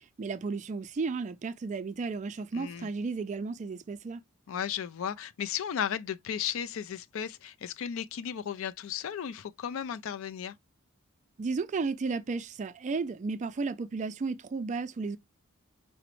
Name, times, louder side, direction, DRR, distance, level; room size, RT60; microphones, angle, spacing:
voice 1, 0.0-4.2 11.4-15.2, right 4 dB, 35° right, 0.3 m, -33 dB
voice 2, 2.5-2.9 4.5-10.5, left 8 dB, 60° left, 0.3 m, -35 dB
4.9 x 2.0 x 3.0 m
head